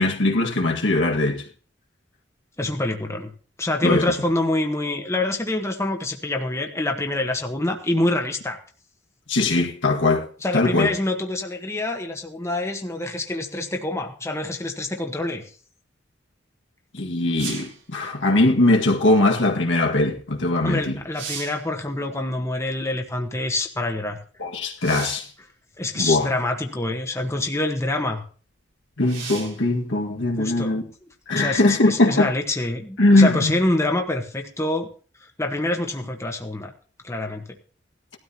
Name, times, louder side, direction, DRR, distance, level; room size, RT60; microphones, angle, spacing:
voice 1, 0.0-1.4 3.8-4.1 9.3-10.3 10.5-10.9 16.9-21.0 24.4-25.3 26.0-26.3 29.0-30.8 31.3-32.3 33.0-33.6, left 2 dB, 75° left, 1.7 m, -20 dB
voice 2, 2.6-3.3 3.6-8.6 10.4-15.4 20.6-24.2 25.8-28.2 30.4-30.8 31.3-34.9 35.4-36.7 37.0-37.4, left 2 dB, 15° left, 1.1 m, -26 dB
sound 1, 17.4-17.8 20.5-20.6 21.0-21.7 24.8-25.3 26.4-26.5 29.0-29.6 33.2-33.3, right 6 dB, 80° right, 4.4 m, -35 dB
18.0 x 12.5 x 2.8 m
head